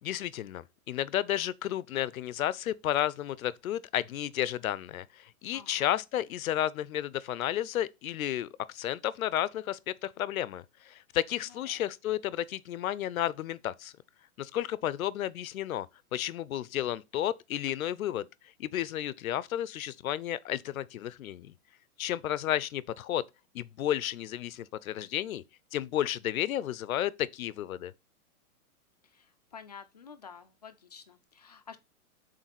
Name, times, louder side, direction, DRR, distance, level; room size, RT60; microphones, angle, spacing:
voice 1, 0.0-13.9 14.4-18.3 18.6-21.5 22.0-23.3 23.5-25.4 25.7-27.9, left 12 dB, 65° left, 0.7 m, -32 dB
voice 2, 5.5-5.9 11.4-11.9 29.0-31.8, left 6 dB, 30° left, 0.4 m, -50 dB
6.6 x 4.4 x 5.9 m
hypercardioid pair, 170°, 45 cm